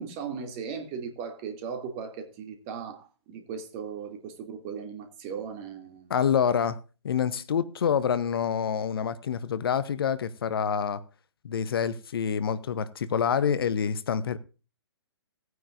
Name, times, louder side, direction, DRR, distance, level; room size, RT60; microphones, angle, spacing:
voice 1, 0.0-6.1, right 6 dB, 30° right, 5 dB, 2.6 m, -37 dB
voice 2, 6.1-6.8 7.0-11.0 11.4-14.4, left 7 dB, 55° left, 16 dB, 0.9 m, -27 dB
17.5 x 9.4 x 2.6 m, 0.32 s
figure-of-eight pair, 125°, 14 cm